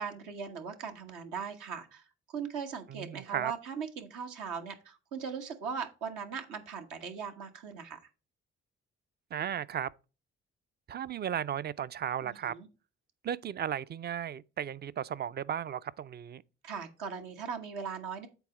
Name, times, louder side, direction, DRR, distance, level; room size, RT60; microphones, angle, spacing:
voice 1, 0.0-8.0 12.2-12.7 16.6-18.3, right 6 dB, 75° right, 1.2 m, -39 dB
voice 2, 2.9-3.5 9.3-9.9 10.9-12.5 13.2-16.4, right 9 dB, 30° right, 0.4 m, -35 dB
8.2 x 4.0 x 4.9 m
hypercardioid pair, 45°, 32 cm